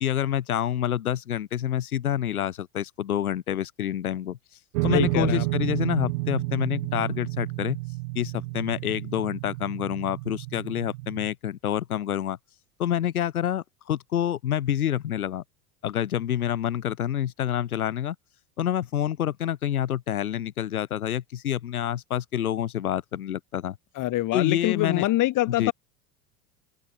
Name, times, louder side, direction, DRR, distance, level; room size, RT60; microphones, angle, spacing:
voice 1, 0.0-4.4 4.8-7.8 8.1-12.4 12.8-15.4 15.8-18.2 18.6-23.8 24.3-25.0 25.5-25.7, left 10 dB, 90° left, 1.2 m, -27 dB
sound 1, 4.7-11.3, right 23 dB, 65° right, 0.5 m, -30 dB
voice 2, 4.9-5.5 24.0-25.7, left 16 dB, 45° left, 2.1 m, -25 dB
open air
hypercardioid pair, 85°, 42 cm